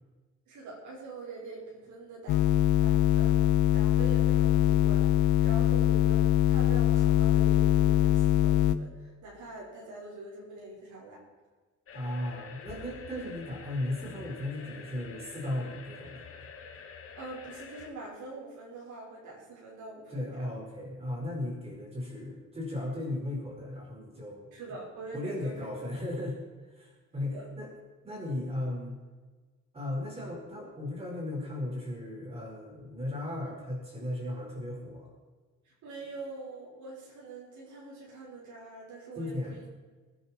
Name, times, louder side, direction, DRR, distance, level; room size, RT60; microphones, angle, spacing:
voice 1, 0.5-2.5 2.8-3.4 3.7-11.2 17.1-20.5 24.5-25.5 27.2-27.4 35.6-39.7, right 3 dB, 80° right, -4 dB, 5.3 m, -44 dB
sound 1, 2.3-8.8, left 11 dB, 85° left, 0.8 m, -23 dB
sound 2, 11.9-17.9, left 5 dB, 50° left, 1.9 m, -47 dB
voice 2, 11.9-16.3 20.1-24.5 25.1-26.4 26.7-27.7 28.0-29.0 29.7-35.1 39.1-39.6, left 1 dB, 20° right, -2 dB, 5.1 m, -36 dB
21.0 x 10.0 x 4.5 m, 1.3 s
cardioid pair, 180°, 29 cm